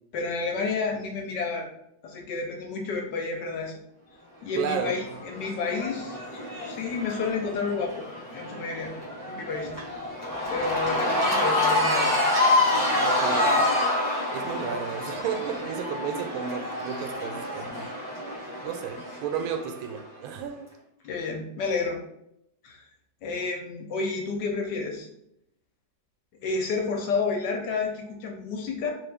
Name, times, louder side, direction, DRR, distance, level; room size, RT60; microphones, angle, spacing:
voice 1, 0.1-1.7 2.0-3.8 4.4-6.2 6.7-8.1 8.3-8.9 9.3-9.7 10.5-12.2 21.0-22.0 22.6-22.8 23.2-25.1 26.4-28.9, left 4 dB, 70° left, 2 dB, 1.1 m, -30 dB
voice 2, 4.5-5.0 13.0-13.7 14.3-17.9 18.6-20.7, right 7 dB, 90° right, 6 dB, 1.4 m, -33 dB
Cheering / Crowd, 4.7-20.0, left 2 dB, 15° right, 0.6 m, -28 dB
3.7 x 2.6 x 3.4 m, 0.77 s
omnidirectional pair, 2.2 m